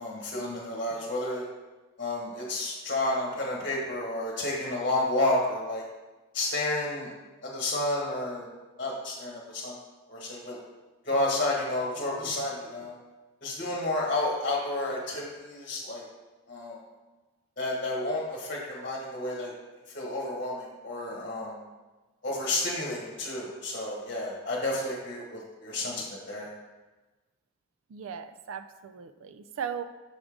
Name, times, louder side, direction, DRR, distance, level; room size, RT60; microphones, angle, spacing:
voice 1, 0.0-1.4 2.0-5.8 6.3-7.1 7.4-8.5 8.8-9.8 10.1-10.6 11.0-12.9 13.4-16.0 16.5-16.8 17.6-19.5 19.9-21.6 22.2-26.5, left 2 dB, 40° left, -3 dB, 1.1 m, -31 dB
voice 2, 27.9-29.8, right 7 dB, 75° right, 11 dB, 0.4 m, -37 dB
6.4 x 3.6 x 4.8 m, 1.2 s
head